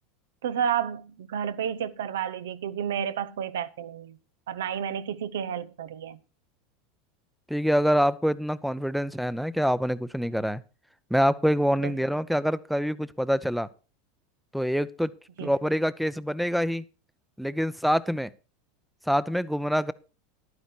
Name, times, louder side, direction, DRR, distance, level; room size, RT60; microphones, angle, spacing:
voice 1, 0.4-4.2 4.5-6.2 11.8-11.9 15.4-15.5, right 8 dB, 85° right, 0.7 m, -31 dB
voice 2, 7.5-10.6 11.1-13.7 14.5-15.1 15.4-16.8 17.4-18.3 19.1-19.9, equal, ahead, 0.6 m, -25 dB
11.5 x 9.6 x 4.4 m
hypercardioid pair, 105°, 0 cm